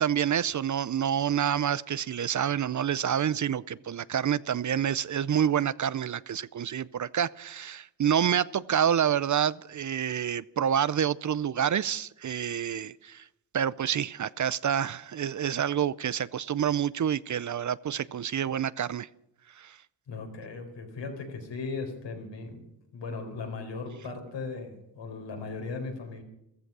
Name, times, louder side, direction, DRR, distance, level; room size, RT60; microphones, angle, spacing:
voice 1, 0.0-13.2 13.5-19.1 19.6-19.8, right 9 dB, 45° right, 0.5 m, -28 dB
voice 2, 20.1-22.6 22.9-26.2, left 4 dB, 85° left, 4.5 m, -37 dB
15.0 x 14.0 x 6.1 m
cardioid pair, 70°, 42 cm